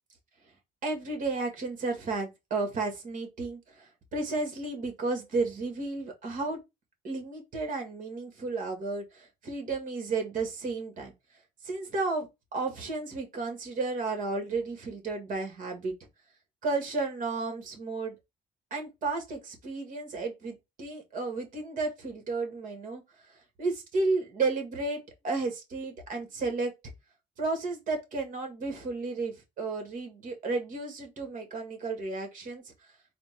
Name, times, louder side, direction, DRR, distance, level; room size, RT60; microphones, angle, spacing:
voice 1, 0.8-6.6 7.0-11.1 11.6-15.9 16.6-18.1 18.7-23.0 23.6-26.7 27.4-32.7, right 3 dB, 50° right, 2.0 m, -33 dB
4.3 x 2.5 x 4.3 m
cardioid pair, 110°, 17 cm